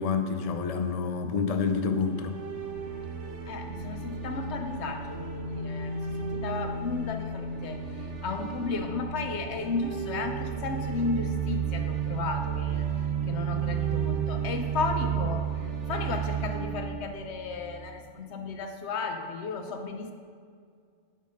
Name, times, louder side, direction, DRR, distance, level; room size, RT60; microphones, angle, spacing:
voice 1, 0.0-2.4, left 5 dB, 40° left, 6 dB, 0.6 m, -28 dB
sound 1, 2.0-18.1, right 7 dB, 70° right, 1.2 m, -33 dB
voice 2, 3.5-12.9 13.2-15.5 15.9-20.1, left 4 dB, 65° left, 5 dB, 1.1 m, -34 dB
9.1 x 6.6 x 5.2 m, 2.2 s
omnidirectional pair, 1.3 m